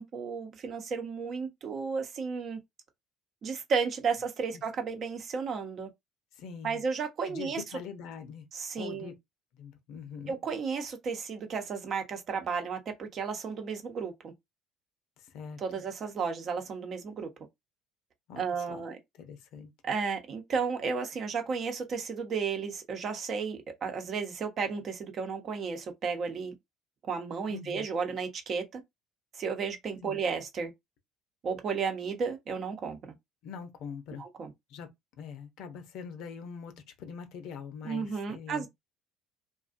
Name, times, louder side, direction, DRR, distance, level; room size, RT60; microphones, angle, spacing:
voice 1, 0.0-2.6 3.4-5.9 6.6-7.6 8.5-9.1 10.3-14.3 15.6-17.3 18.4-19.0 19.8-26.5 27.0-28.8 29.3-30.7 31.4-33.0 34.2-34.5 37.8-38.7, right 5 dB, 50° right, 0.8 m, -33 dB
voice 2, 6.3-6.8 7.3-8.5 8.8-9.1 9.5-10.4 15.2-15.8 18.3-19.7 27.5-27.9 30.0-30.2 33.4-34.2 34.7-34.9 35.2-36.7 37.0-38.7, left 6 dB, 70° left, 0.7 m, -43 dB
2.4 x 2.3 x 2.5 m
supercardioid pair, 80°, 0 cm